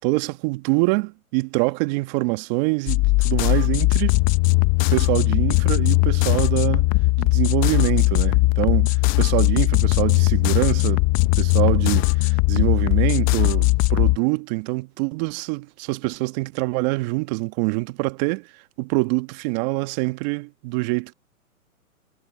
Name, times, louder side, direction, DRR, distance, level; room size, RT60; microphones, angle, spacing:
voice 1, 0.0-4.2 4.9-6.9 7.2-11.1 11.4-18.5 18.8-21.1, right 26 dB, 30° right, 1.5 m, -25 dB
sound 1, 2.9-14.2, left 23 dB, 20° left, 0.8 m, -19 dB
hypercardioid pair, 135°, 44 cm